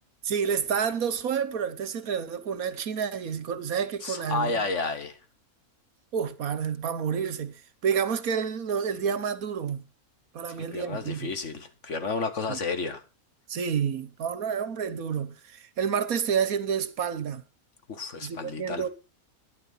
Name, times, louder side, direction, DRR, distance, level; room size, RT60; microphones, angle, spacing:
voice 1, 0.2-4.7 6.1-9.8 10.3-11.3 12.5-12.6 13.5-17.4 18.2-18.9, right 7 dB, 75° right, 1.6 m, -29 dB
voice 2, 4.0-5.2 10.5-13.0 17.9-18.9, left 4 dB, 55° left, 1.9 m, -31 dB
13.5 x 11.0 x 5.7 m
omnidirectional pair, 1.5 m